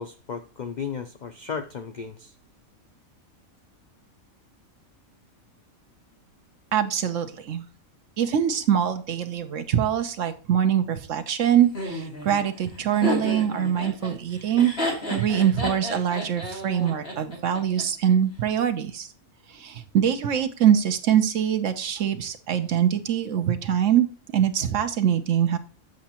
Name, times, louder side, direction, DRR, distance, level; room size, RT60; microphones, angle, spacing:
voice 1, 0.0-2.3, left 6 dB, 70° left, 8 dB, 0.4 m, -34 dB
voice 2, 6.7-7.6 8.2-14.7 15.1-19.1 19.5-24.1 24.3-25.6, right 9 dB, 65° right, 9 dB, 1.1 m, -23 dB
Laughter, 11.7-17.8, left 1 dB, 50° left, 2.3 m, -31 dB
7.6 x 7.0 x 2.9 m, 0.37 s
omnidirectional pair, 1.4 m